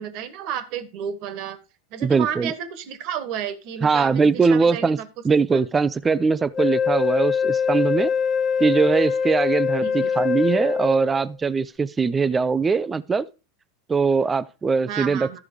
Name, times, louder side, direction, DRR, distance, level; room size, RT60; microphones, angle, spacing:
voice 1, 0.0-1.6 1.9-5.1 5.5-5.6 9.8-10.1 14.9-15.4, right 8 dB, 55° right, 1.5 m, -32 dB
voice 2, 2.0-2.5 3.8-5.0 5.2-8.1 8.6-13.3 13.9-15.4, right 5 dB, 20° right, 0.5 m, -21 dB
Wind instrument woodwind instrument, 6.5-11.3, left 6 dB, 25° left, 1.4 m, -23 dB
13.5 x 4.8 x 4.9 m
hypercardioid pair, 90°, 0 cm